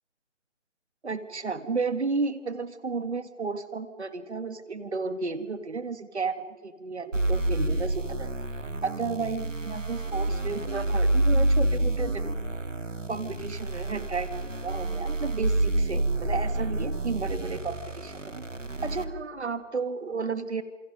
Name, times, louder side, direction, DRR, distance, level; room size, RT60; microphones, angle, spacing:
voice 1, 1.0-8.3 8.8-12.3 13.1-18.4 18.8-20.6, right 4 dB, 65° right, 11 dB, 2.1 m, -33 dB
sound 1, 7.1-19.0, right 1 dB, 90° right, 2.0 m, -28 dB
27.5 x 25.5 x 5.4 m, 1.3 s
figure-of-eight pair, 155°, 37 cm